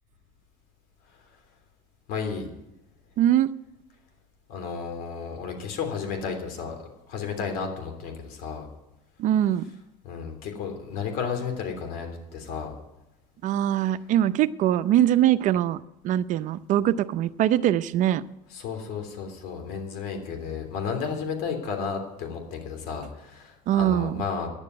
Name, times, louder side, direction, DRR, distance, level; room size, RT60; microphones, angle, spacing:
voice 1, 2.1-2.5 4.5-8.7 10.0-12.7 18.5-24.5, left 6 dB, 65° left, 4 dB, 3.2 m, -33 dB
voice 2, 3.2-3.5 9.2-9.7 13.4-18.2 23.7-24.2, right 11 dB, 50° right, 13 dB, 0.6 m, -22 dB
10.5 x 8.2 x 9.6 m, 0.91 s
supercardioid pair, 115°, 17 cm